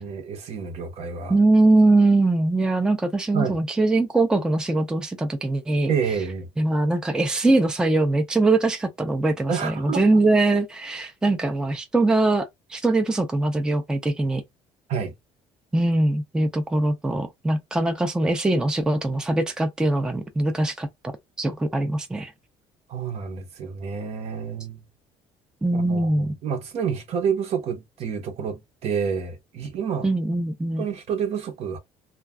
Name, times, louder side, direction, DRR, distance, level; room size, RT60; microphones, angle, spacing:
voice 1, 0.0-1.4 3.3-3.6 5.9-6.5 9.5-10.2 14.9-15.1 22.9-24.8 25.7-30.1 30.8-31.8, right 6 dB, 55° right, 0.8 m, -29 dB
voice 2, 1.3-5.9 6.6-14.4 15.7-20.9 21.4-22.3 25.6-26.3 30.0-30.8, right 2 dB, 5° right, 0.4 m, -22 dB
2.3 x 2.2 x 3.4 m
cardioid pair, 125°, 12 cm